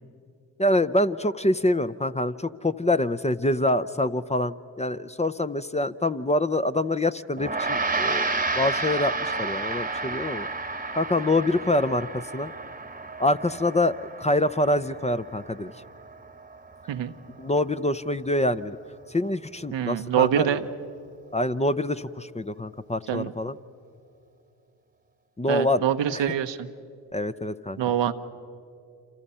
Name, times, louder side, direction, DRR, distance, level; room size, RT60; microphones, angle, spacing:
voice 1, 0.6-10.5 11.0-12.5 13.2-15.7 17.4-18.8 19.1-20.6 21.3-23.6 25.4-25.8 26.1-26.2 27.1-27.8, left 1 dB, 15° left, 12 dB, 0.7 m, -25 dB
Gong, 7.4-16.9, right 3 dB, 20° right, 1.3 m, -31 dB
voice 2, 19.7-20.6 23.1-23.3 25.5-26.7 27.8-28.1, right 10 dB, 75° right, 8 dB, 1.0 m, -25 dB
28.5 x 26.5 x 5.6 m, 2.6 s
supercardioid pair, 40°, 44 cm